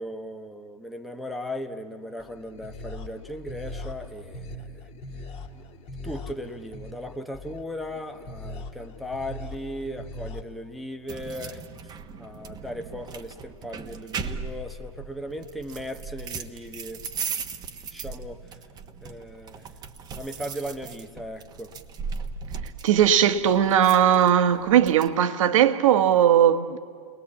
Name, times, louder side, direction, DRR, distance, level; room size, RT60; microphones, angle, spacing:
voice 1, 0.0-4.9 6.0-11.9 12.2-17.0 17.9-18.6 19.0-19.7 20.1-21.7, equal, ahead, 1.0 m, -37 dB
sound 1, 2.2-10.4, left 2 dB, 30° left, 2.3 m, -40 dB
sound 2, 11.1-25.1, right 5 dB, 20° right, 1.3 m, -38 dB
voice 2, 22.8-26.8, right 9 dB, 60° right, 1.5 m, -19 dB
29.5 x 20.5 x 8.5 m
hypercardioid pair, 115°, 19 cm